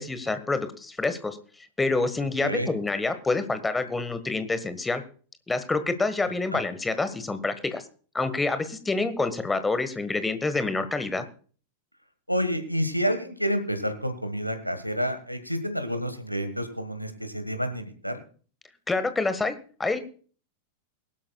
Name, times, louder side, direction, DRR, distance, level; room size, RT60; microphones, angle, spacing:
voice 1, 0.0-1.4 1.8-5.0 5.5-7.8 8.1-11.2 18.9-19.5 19.8-20.0, left 3 dB, 10° left, 11 dB, 1.5 m, -27 dB
voice 2, 12.3-18.2, equal, 90° left, 8 dB, 1.6 m, -29 dB
21.5 x 12.0 x 2.3 m, 0.41 s
figure-of-eight pair, 90°, 0 cm